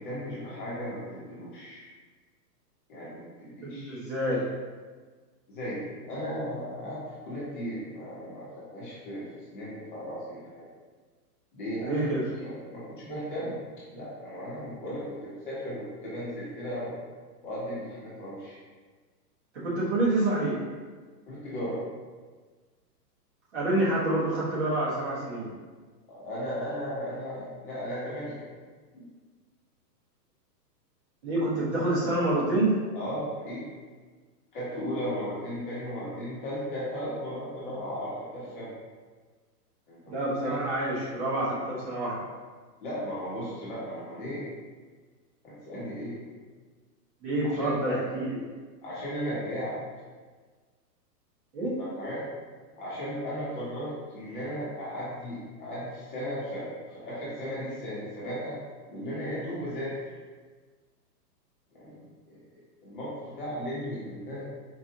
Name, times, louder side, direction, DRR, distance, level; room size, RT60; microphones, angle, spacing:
voice 1, 0.0-1.8 2.9-4.4 5.5-10.7 11.5-12.1 12.4-13.6 13.9-16.9 17.4-18.6 21.3-21.8 26.1-28.5 28.9-29.0 32.9-33.7 34.5-38.7 39.9-40.6 42.8-44.5 45.4-46.2 47.4-48.0 48.8-49.8 51.8-52.2 52.8-58.6 58.9-60.1 61.7-64.4, equal, 30° left, -9 dB, 1.0 m, -36 dB
voice 2, 3.6-4.4 11.8-12.3 19.5-20.6 23.5-25.5 31.2-32.8 40.1-42.2 47.2-48.4 51.5-51.7, right 1 dB, 40° right, -9 dB, 1.4 m, -27 dB
4.6 x 2.5 x 2.9 m, 1.4 s
hypercardioid pair, 170°, 50 cm